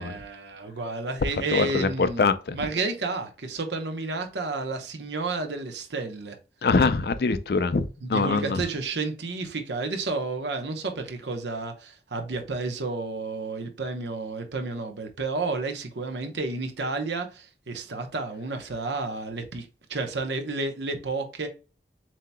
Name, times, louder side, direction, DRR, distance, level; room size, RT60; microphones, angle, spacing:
voice 1, 0.0-6.4 8.0-21.5, right 3 dB, 80° right, 0.9 m, -31 dB
voice 2, 1.5-2.6 6.6-8.6, left 4 dB, 60° left, 0.4 m, -24 dB
7.4 x 2.8 x 2.2 m
head